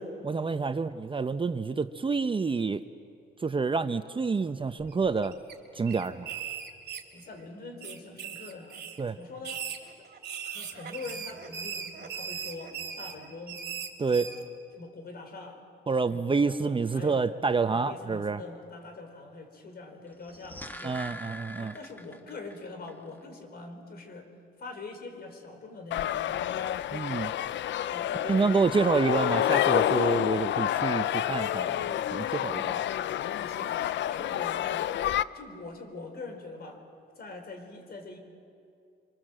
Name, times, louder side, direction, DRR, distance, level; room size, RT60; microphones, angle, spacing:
voice 1, 0.0-2.8 3.4-5.4 5.7-6.3 9.0-9.2 14.0-14.3 15.9-18.4 20.8-21.7 26.9-27.3 28.2-32.7, right 4 dB, 25° right, 10 dB, 0.8 m, -28 dB
sound 1, 4.8-5.5 5.9-7.4 7.8-9.0 9.4-14.4, right 7 dB, 55° right, 3.3 m, -39 dB
voice 2, 7.1-9.7 10.4-13.6 14.1-14.4 14.8-15.6 16.1-17.3 17.7-21.0 21.6-24.3 24.6-26.5 27.8-29.0 33.3-36.8 37.2-38.2, left 3 dB, 50° left, 5 dB, 4.6 m, -44 dB
sound 2, 20.1-22.6 22.9-23.0, left 1 dB, 10° left, 1.4 m, -43 dB
sound 3, 25.9-35.2, left 11 dB, 65° left, 0.6 m, -28 dB
25.5 x 25.0 x 7.7 m, 2.4 s
cardioid pair, 90°, 20 cm